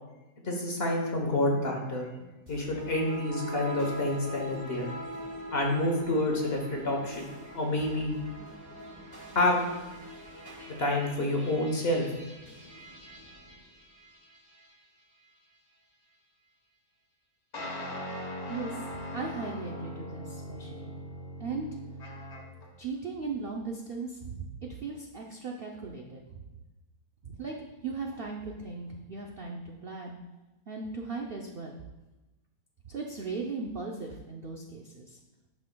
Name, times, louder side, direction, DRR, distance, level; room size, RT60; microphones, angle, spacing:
voice 1, 0.4-2.1 2.5-4.9 5.5-7.3 7.5-8.1 9.3-9.6 10.8-12.1, left 1 dB, 45° left, 1 dB, 1.1 m, -28 dB
sound 1, 2.5-14.8, equal, 15° right, 1.4 m, -43 dB
sound 2, 17.5-22.7, left 1 dB, 65° left, 1.7 m, -40 dB
voice 2, 19.1-21.0 21.4-21.7 22.8-24.5 24.8-26.4 27.2-27.6 27.8-30.2 30.7-31.8 32.9-35.2, right 4 dB, 60° right, 0 dB, 0.6 m, -37 dB
11.0 x 5.7 x 2.2 m, 1.1 s
omnidirectional pair, 1.7 m